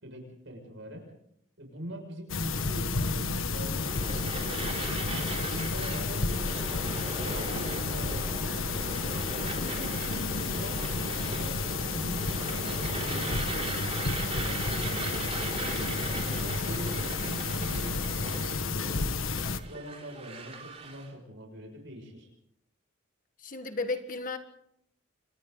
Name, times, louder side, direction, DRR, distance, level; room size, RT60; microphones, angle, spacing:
voice 1, 0.0-1.1 1.6-4.8 5.4-8.9 9.4-10.8 11.3-15.0 15.4-16.1 16.4-19.2 19.6-22.3, equal, 60° right, 1 dB, 6.4 m, -43 dB
sound 1, 2.3-19.6, left 4 dB, 75° left, 1.4 m, -31 dB
sound 2, 3.8-21.1, right 3 dB, 30° right, 3.9 m, -39 dB
sound 3, 6.3-18.1, right 1 dB, 10° right, 1.7 m, -50 dB
voice 2, 23.4-24.4, left 3 dB, 40° left, 7 dB, 1.6 m, -34 dB
29.5 x 25.0 x 4.0 m, 0.72 s
head